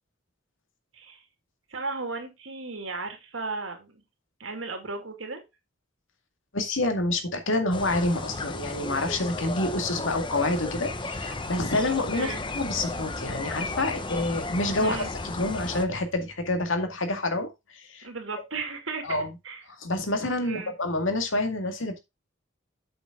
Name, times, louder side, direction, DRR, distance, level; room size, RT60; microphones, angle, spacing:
voice 1, 1.7-4.0 4.4-5.4 12.1-12.4 14.8-15.1 18.0-19.2 19.4-19.6 20.4-20.7, right 3 dB, 80° right, 5 dB, 2.5 m, -35 dB
voice 2, 6.5-12.3 12.5-18.1 19.1-19.3 19.8-22.0, left 2 dB, 80° left, 6 dB, 2.1 m, -28 dB
sound 1, 7.7-15.8, left 3 dB, 25° left, 0.8 m, -34 dB
8.0 x 6.3 x 3.7 m, 0.23 s
head